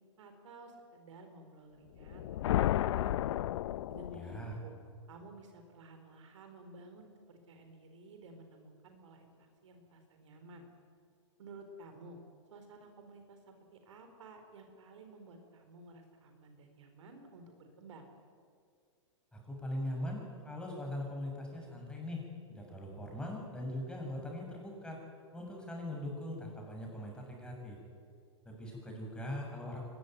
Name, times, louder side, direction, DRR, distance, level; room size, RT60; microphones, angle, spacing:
voice 1, 0.2-2.5 2.8-3.2 3.9-4.7 5.1-10.7 11.4-12.2 12.5-18.1, right 2 dB, 75° right, 6 dB, 4.2 m, -53 dB
sound 1, 2.0-4.6, left 13 dB, 65° left, 0.6 m, -32 dB
voice 2, 4.1-4.6 19.3-22.2 22.5-25.0 25.3-27.8 28.5-29.8, left 1 dB, 5° left, 0 dB, 7.0 m, -41 dB
23.0 x 20.5 x 9.4 m, 2.3 s
hypercardioid pair, 130°, 16 cm